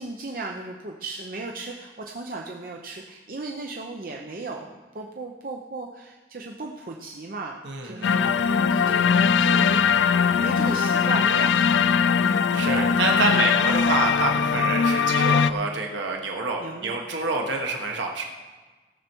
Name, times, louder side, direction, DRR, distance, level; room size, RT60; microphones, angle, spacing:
voice 1, 0.0-9.8 10.3-12.0 12.2-12.5 13.2-13.6 14.0-14.1 14.5-14.7 16.6-17.0, right 2 dB, 50° right, 0 dB, 0.7 m, -36 dB
voice 2, 7.6-8.3 12.5-18.2, right 3 dB, 90° right, 1 dB, 1.2 m, -27 dB
sound 1, 8.0-15.5, left 6 dB, 80° left, 0.4 m, -21 dB
17.5 x 6.6 x 4.5 m, 1.3 s
head